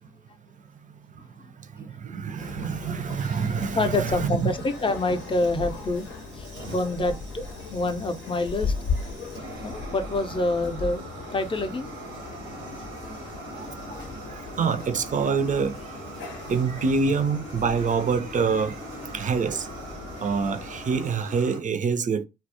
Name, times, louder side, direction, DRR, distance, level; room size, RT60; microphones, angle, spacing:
voice 1, 0.9-4.5 13.5-13.7 14.2-19.7 20.2-22.2, right 5 dB, 40° right, 0.4 m, -27 dB
sound 1, 2.4-21.0, left 4 dB, 70° left, 0.7 m, -38 dB
Fire, 3.0-21.6, right 2 dB, 85° right, 0.7 m, -42 dB
voice 2, 3.8-6.1 6.3-7.4 7.7-8.7 9.6-11.1 11.3-11.9 13.9-14.0 14.3-14.4, left 2 dB, 25° left, 0.6 m, -27 dB
2.2 x 2.0 x 2.8 m
hypercardioid pair, 40°, 21 cm